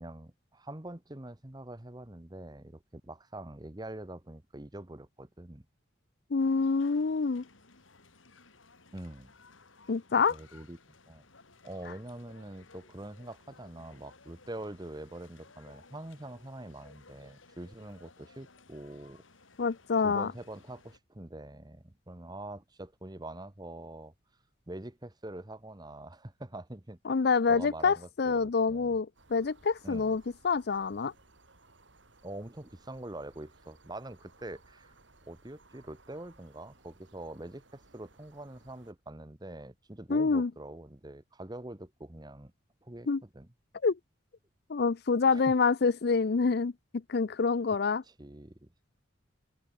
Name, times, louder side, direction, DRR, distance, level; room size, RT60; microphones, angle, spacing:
voice 1, 0.0-5.6 8.9-9.3 10.3-11.2 11.6-19.2 20.0-24.1 24.7-27.0 27.5-29.0 29.8-30.1 32.2-34.9 35.3-42.5 42.8-43.5 45.3-45.4 48.1-48.7, right 1 dB, 20° right, 1.2 m, -44 dB
voice 2, 6.3-7.4 9.9-10.4 19.6-20.3 27.1-31.1 40.1-40.5 43.1-43.2 43.8-44.0 44.7-46.7 47.1-48.0, left 4 dB, 55° left, 0.5 m, -27 dB
sound 1, 6.4-21.0, left 3 dB, 85° left, 4.1 m, -59 dB
sound 2, 29.1-38.9, right 2 dB, 70° right, 4.0 m, -61 dB
open air
head